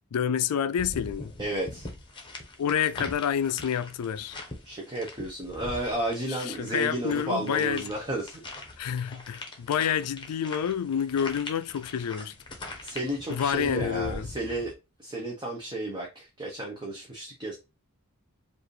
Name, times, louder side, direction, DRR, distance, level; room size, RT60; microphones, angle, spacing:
voice 1, 0.1-1.3 2.6-4.4 6.3-7.9 8.8-12.3 13.3-14.3, left 8 dB, 85° left, 0.4 m, -28 dB
sound 1, 0.8-14.7, left 2 dB, 20° left, 1.0 m, -42 dB
voice 2, 1.4-1.9 4.6-8.4 12.8-14.7 15.0-17.6, right 1 dB, 20° right, 0.9 m, -32 dB
4.7 x 2.6 x 3.2 m
head